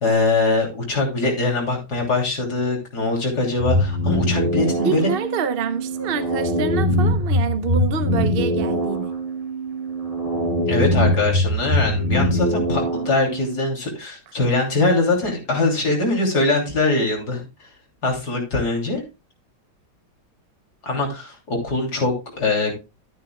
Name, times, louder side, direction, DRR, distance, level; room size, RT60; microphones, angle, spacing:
voice 1, 0.0-5.1 10.7-17.4 18.0-19.0 20.8-22.7, left 2 dB, 65° left, 3.6 m, -22 dB
sound 1, 3.6-13.6, equal, 20° right, 4.7 m, -22 dB
voice 2, 4.8-9.1, right 6 dB, 50° right, 0.7 m, -26 dB
13.0 x 9.3 x 2.3 m
omnidirectional pair, 1.9 m